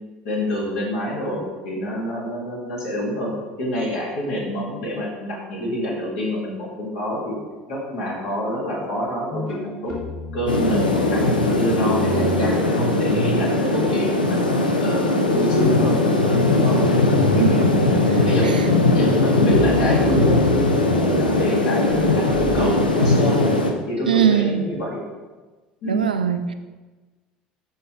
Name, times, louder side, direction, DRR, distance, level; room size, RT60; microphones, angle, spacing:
voice 1, 0.2-3.3 3.6-7.3 7.7-10.0 10.3-14.4 14.8-16.2 16.5-16.8 17.3-17.7 18.2-18.5 18.9-23.5 23.9-25.0 25.8-26.1, equal, 65° left, -4 dB, 2.6 m, -26 dB
sound 1, 9.3-13.4 13.7-23.2, left 2 dB, 40° left, 2.8 m, -32 dB
sound 2, 10.5-23.7, left 2 dB, 85° left, 0.7 m, -19 dB
voice 2, 17.4-18.6 24.1-24.6 25.8-26.5, right 8 dB, 80° right, 9 dB, 0.4 m, -22 dB
13.0 x 4.6 x 3.4 m, 1.3 s
figure-of-eight pair, 65°, 5 cm